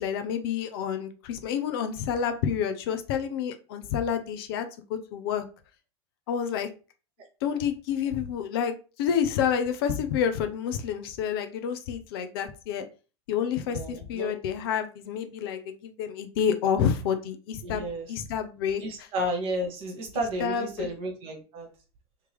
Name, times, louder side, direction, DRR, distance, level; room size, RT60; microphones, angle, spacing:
voice 1, 0.0-5.4 6.3-6.7 7.4-12.9 13.3-17.8 18.1-19.1 20.4-20.9, left 8 dB, 60° left, 8 dB, 0.6 m, -29 dB
voice 2, 13.7-14.3 17.6-18.1 18.8-21.7, right 1 dB, 40° right, 3 dB, 1.3 m, -32 dB
3.3 x 2.9 x 3.3 m, 0.34 s
figure-of-eight pair, 85°, 14 cm